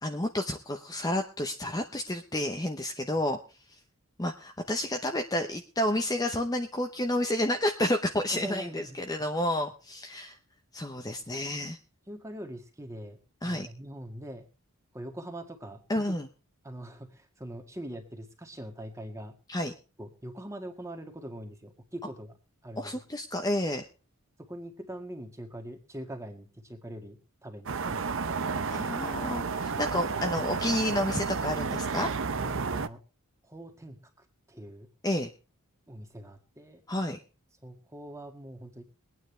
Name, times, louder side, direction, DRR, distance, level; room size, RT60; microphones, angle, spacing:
voice 1, 0.0-3.4 4.2-10.4 10.7-11.8 13.4-13.7 15.9-16.3 19.5-19.7 22.8-23.8 28.7-32.1 35.0-35.3 36.9-37.2, left 1 dB, 15° left, 4 dB, 0.8 m, -30 dB
voice 2, 8.3-9.0 11.1-11.2 12.1-14.5 14.9-15.8 16.1-16.2 16.6-19.3 20.0-22.4 22.6-23.0 24.4-28.4 32.3-33.0 33.4-34.0 34.5-34.9 35.9-36.8 37.6-38.9, right 1 dB, 15° right, 4 dB, 1.8 m, -43 dB
sound 1, 27.7-32.9, right 5 dB, 60° right, 0.7 m, -31 dB
22.5 x 9.3 x 3.3 m, 0.33 s
head